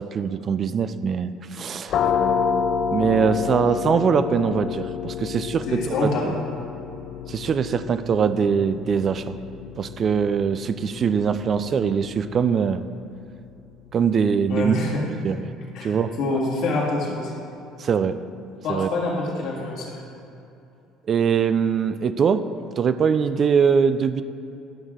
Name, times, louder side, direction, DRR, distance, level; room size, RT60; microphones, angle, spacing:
voice 1, 0.0-2.0 2.9-6.4 7.3-9.4 9.8-12.9 13.9-15.5 15.8-16.1 17.8-18.2 18.7-18.9 21.1-22.4 22.8-24.2, right 6 dB, 40° right, 12 dB, 0.3 m, -22 dB
sound 1, 1.9-13.4, left 6 dB, 50° left, 0.4 m, -29 dB
voice 2, 5.7-6.3 14.5-15.0 15.7-17.3 18.6-20.0, left 2 dB, 65° left, -2 dB, 1.9 m, -26 dB
11.5 x 6.3 x 3.7 m, 2.7 s
cardioid pair, 115°, 0 cm